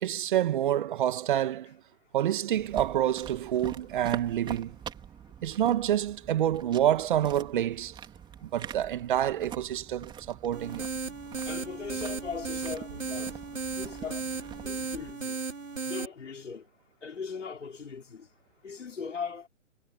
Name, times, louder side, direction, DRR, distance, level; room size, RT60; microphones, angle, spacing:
voice 1, 0.0-1.8 2.1-4.8 5.4-8.0 8.4-10.8, right 11 dB, 40° right, 2.0 m, -27 dB
sound 1, 2.5-15.1, right 9 dB, 10° right, 3.6 m, -45 dB
sound 2, 10.5-16.1, right 4 dB, 80° right, 6.4 m, -35 dB
voice 2, 11.5-13.3 13.8-14.2 14.6-15.4 15.9-16.6 17.0-18.3 18.6-19.5, left 6 dB, 65° left, 5.6 m, -39 dB
figure-of-eight pair, 135°, 39 cm